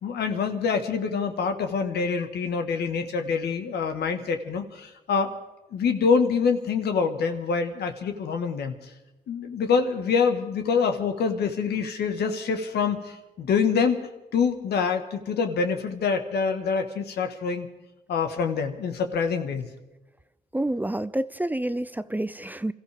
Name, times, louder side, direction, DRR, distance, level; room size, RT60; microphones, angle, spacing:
voice 1, 0.0-5.3 5.7-8.9 9.3-17.7 18.1-19.7, left 5 dB, 90° left, 6 dB, 1.6 m, -26 dB
voice 2, 20.5-22.7, right 1 dB, 10° right, 15 dB, 0.5 m, -28 dB
27.5 x 14.5 x 3.6 m, 1.0 s
cardioid pair, 80°, 17 cm